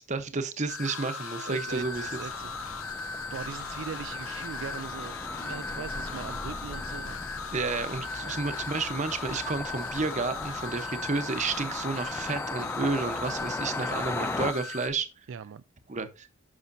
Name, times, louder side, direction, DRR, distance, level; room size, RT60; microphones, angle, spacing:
voice 1, 0.0-2.1 7.5-15.1 15.9-16.3, right 3 dB, 35° right, 0.9 m, -31 dB
sound 1, 0.7-14.9, left 4 dB, 85° left, 1.3 m, -38 dB
voice 2, 1.5-2.8 3.3-7.2 8.2-8.3 15.3-15.6, right 7 dB, 65° right, 0.4 m, -40 dB
sound 2, 1.7-14.5, left 2 dB, 10° left, 0.3 m, -38 dB
11.0 x 5.7 x 2.6 m
head